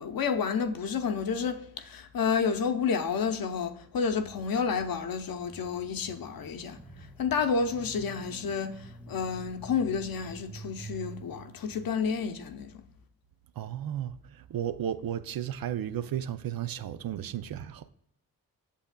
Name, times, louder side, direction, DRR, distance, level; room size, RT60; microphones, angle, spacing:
voice 1, 0.0-6.8 7.2-12.8, left 6 dB, 65° left, 0.7 m, -30 dB
sound 1, 4.1-11.9, right 3 dB, 5° right, 0.5 m, -48 dB
voice 2, 13.6-17.9, right 10 dB, 65° right, 0.5 m, -34 dB
8.2 x 6.8 x 2.2 m
cardioid pair, 50°, 38 cm